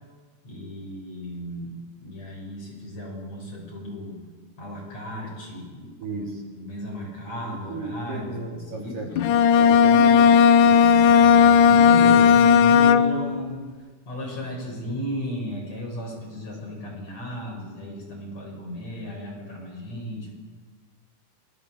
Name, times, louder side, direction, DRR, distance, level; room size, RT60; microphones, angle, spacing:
voice 1, 0.4-4.2 4.6-9.3 10.7-13.7 14.1-20.3, equal, 45° left, -2 dB, 8.8 m, -35 dB
voice 2, 7.5-10.8, right 3 dB, 60° right, -1 dB, 5.2 m, -35 dB
Bowed string instrument, 9.2-13.4, left 7 dB, 70° left, 2.0 m, -15 dB
29.0 x 20.0 x 8.1 m, 1.5 s
omnidirectional pair, 4.4 m